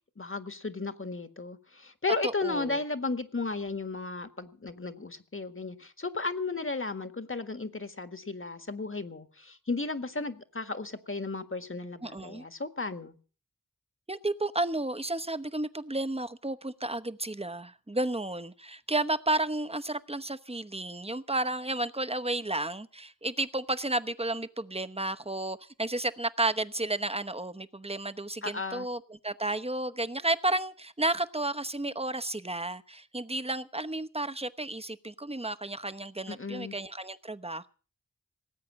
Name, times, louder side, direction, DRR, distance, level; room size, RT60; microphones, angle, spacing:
voice 1, 0.2-13.2 28.4-28.9 36.3-36.8, left 3 dB, 40° left, 9 dB, 1.7 m, -34 dB
voice 2, 2.2-2.8 12.0-12.5 14.1-37.7, right 2 dB, 20° right, 12 dB, 1.0 m, -32 dB
19.0 x 8.4 x 7.5 m, 0.40 s
wide cardioid pair, 40°, 32 cm